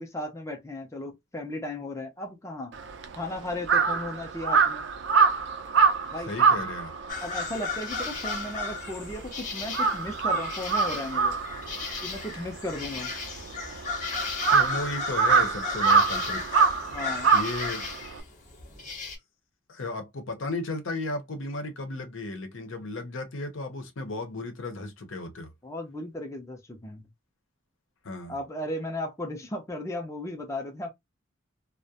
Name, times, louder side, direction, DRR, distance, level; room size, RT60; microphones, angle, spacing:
voice 1, 0.0-2.8 3.2-4.9 6.1-6.3 7.2-11.4 12.0-13.1 16.9-17.3 25.6-27.1 28.3-30.9, left 1 dB, 15° left, 0.5 m, -35 dB
Crow, 2.7-9.3 9.6-18.2, right 5 dB, 60° right, 0.4 m, -25 dB
voice 2, 6.3-6.9 14.5-16.5 17.3-17.8 19.7-25.5 28.0-28.3, left 2 dB, 75° left, 0.7 m, -34 dB
sound 1, 7.1-19.2, left 4 dB, 40° left, 0.8 m, -35 dB
2.3 x 2.1 x 2.7 m
head